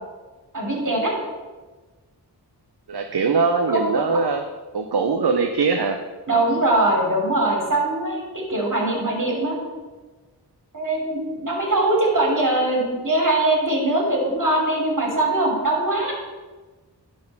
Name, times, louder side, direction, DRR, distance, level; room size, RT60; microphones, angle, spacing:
voice 1, 0.5-1.1 3.7-4.1 6.3-9.6 10.7-16.1, right 2 dB, 45° right, -1 dB, 3.1 m, -22 dB
voice 2, 2.9-4.4 4.7-6.0, right 4 dB, 65° right, 5 dB, 0.8 m, -21 dB
11.0 x 4.7 x 5.5 m, 1.3 s
cardioid pair, 45°, 42 cm